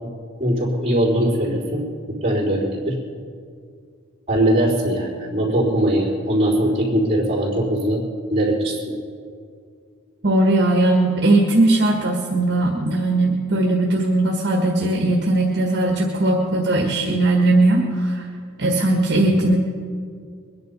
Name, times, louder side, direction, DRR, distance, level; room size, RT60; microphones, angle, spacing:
voice 1, 0.4-1.9 2.2-2.9 4.3-8.0 8.3-8.9 19.3-19.4, right 1 dB, 30° right, -5 dB, 4.0 m, -21 dB
voice 2, 10.2-18.2 18.6-19.6, right 2 dB, 55° right, 0 dB, 1.6 m, -18 dB
22.5 x 10.5 x 5.4 m, 2.2 s
head